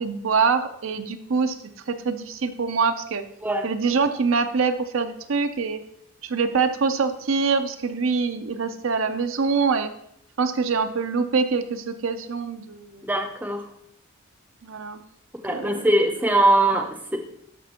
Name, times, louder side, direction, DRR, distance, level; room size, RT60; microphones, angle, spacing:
voice 1, 0.0-1.6 1.9-3.2 3.6-5.8 6.2-9.9 10.4-13.0 14.6-15.0 15.5-15.9, right 5 dB, 70° right, 8 dB, 0.6 m, -24 dB
voice 2, 13.0-13.7 15.4-17.2, right 1 dB, 10° right, 5 dB, 0.6 m, -21 dB
13.0 x 5.1 x 2.9 m, 0.71 s
head